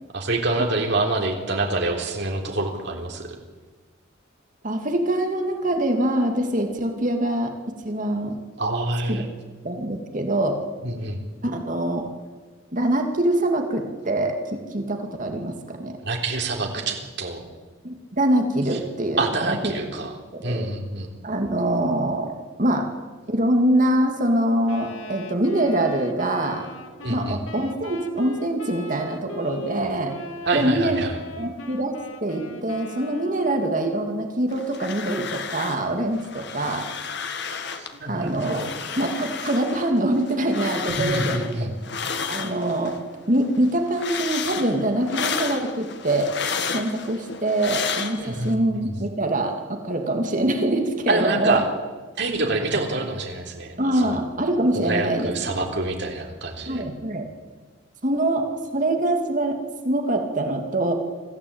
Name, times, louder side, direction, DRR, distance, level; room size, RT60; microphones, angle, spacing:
voice 1, 0.1-3.4 8.6-9.3 10.8-11.2 16.0-17.4 18.7-18.8 19.2-20.2 20.4-21.1 27.0-27.4 30.5-31.2 37.7-38.7 40.9-41.7 48.2-48.9 51.1-51.6 52.2-54.2 54.7-56.8, right 2 dB, 55° right, 2 dB, 3.7 m, -26 dB
voice 2, 4.6-7.5 7.8-8.3 9.1-9.2 9.6-10.6 11.4-12.1 12.7-16.0 17.8-19.2 19.5-19.9 20.3-20.7 21.2-22.9 23.3-26.7 27.1-30.1 30.5-31.0 31.4-31.9 32.2-36.9 38.1-38.6 39.0-41.5 42.3-43.0 43.3-46.3 46.7-51.6 53.8-55.3 55.6-55.7 56.7-57.3 58.0-58.5 58.7-59.6 59.8-60.9, right 1 dB, 40° right, 4 dB, 2.4 m, -24 dB
Wind instrument woodwind instrument, 24.6-33.7, left 1 dB, 80° left, 2.2 m, -40 dB
sound 1, 34.5-35.9 36.1-37.9 38.3-43.0 43.4-48.5, left 6 dB, 55° left, 1.8 m, -32 dB
25.0 x 15.0 x 8.8 m, 1.4 s
head